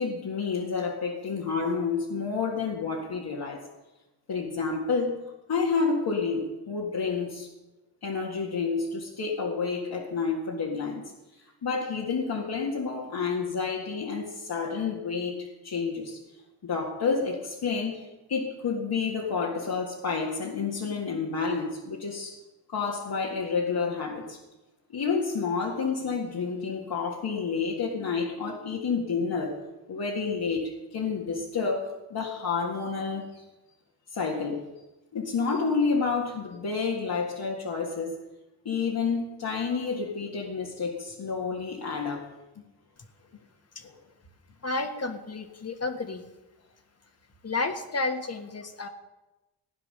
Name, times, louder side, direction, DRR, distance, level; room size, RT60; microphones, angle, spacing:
voice 1, 0.0-3.6 4.3-5.2 5.5-7.5 8.0-11.1 11.6-16.2 16.6-22.4 22.7-24.4 24.9-29.6 29.9-33.4 34.1-34.7 35.1-38.2 38.7-42.3 43.8-43.9, left 5 dB, 65° left, -2 dB, 2.0 m, -29 dB
voice 2, 44.6-46.2 47.4-48.9, left 3 dB, 35° left, 7 dB, 1.6 m, -31 dB
16.0 x 10.0 x 6.6 m, 1.1 s
wide cardioid pair, 100°, 41 cm